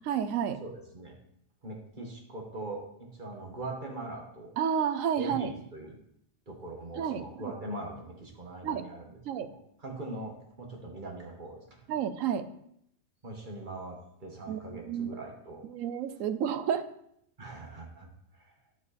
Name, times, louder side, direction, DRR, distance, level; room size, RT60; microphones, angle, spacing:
voice 1, 0.0-0.6 4.6-5.5 7.0-7.2 8.6-8.9 9.3-9.5 11.9-12.4 14.5-15.1 15.6-16.9, right 8 dB, 80° right, 11 dB, 1.0 m, -30 dB
voice 2, 0.6-1.2 1.6-4.5 5.2-6.0 6.5-11.9 13.2-15.6 17.4-18.1 18.3-18.5, right 2 dB, 40° right, 0 dB, 1.6 m, -41 dB
11.0 x 4.9 x 4.2 m, 0.73 s
omnidirectional pair, 1.4 m